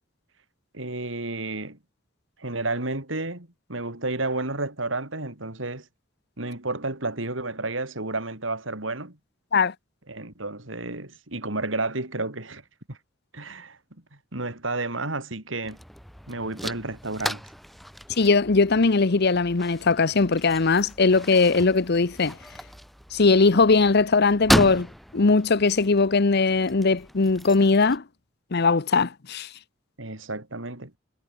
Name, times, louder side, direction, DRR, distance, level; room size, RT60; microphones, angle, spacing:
voice 1, 0.7-1.8 2.4-5.8 6.4-9.2 10.1-12.6 12.9-13.0 13.3-13.8 14.3-15.8 16.3-17.4 30.0-30.9, right 2 dB, 80° right, 4.7 m, -31 dB
sound 1, 15.6-28.0, equal, ahead, 6.8 m, -34 dB
voice 2, 18.2-22.4 23.1-24.9 25.1-28.0 28.5-29.5, left 4 dB, 55° left, 0.9 m, -20 dB
head